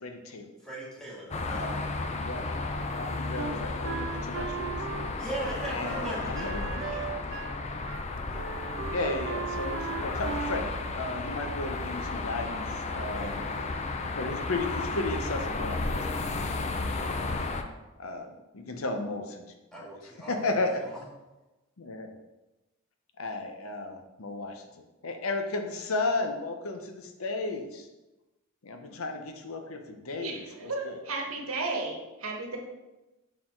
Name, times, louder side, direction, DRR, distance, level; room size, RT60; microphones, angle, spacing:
voice 1, 0.0-0.5 1.5-2.4 2.9-4.7 5.7-6.9 8.9-10.7 10.9-12.6 12.9-13.4 14.2-16.0 16.9-17.2 18.0-19.4 20.3-20.8 21.8-22.1 23.2-24.6 25.0-27.8 28.6-31.0, left 2 dB, 90° left, 5 dB, 0.8 m, -34 dB
voice 2, 0.6-1.7 5.2-7.3 8.4-8.5 13.2-13.6 19.7-20.4 20.7-21.0, right 1 dB, 5° left, -6 dB, 1.8 m, -39 dB
sound 1, 1.3-17.6, left 3 dB, 35° left, 0.5 m, -33 dB
Wind instrument woodwind instrument, 3.4-7.6 7.9-8.1 8.3-10.7, right 7 dB, 60° right, 0.3 m, -38 dB
voice 3, 30.2-32.6, right 3 dB, 90° right, 2 dB, 1.2 m, -34 dB
5.7 x 4.4 x 4.5 m, 1.1 s
head